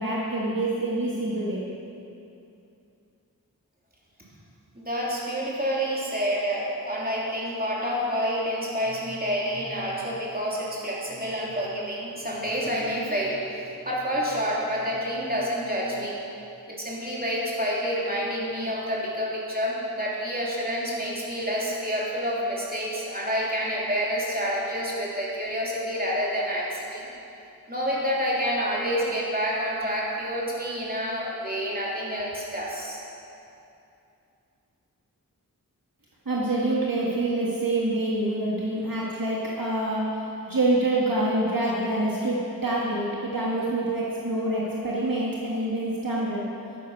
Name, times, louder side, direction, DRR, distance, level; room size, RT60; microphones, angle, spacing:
voice 1, 0.0-1.6 36.2-40.1 40.5-46.4, right 1 dB, 70° right, -5 dB, 1.7 m, -26 dB
voice 2, 4.8-16.2 16.8-27.1 27.7-33.0, equal, 25° right, -5 dB, 3.1 m, -28 dB
13.0 x 9.9 x 5.5 m, 2.7 s
wide cardioid pair, 45°, 35 cm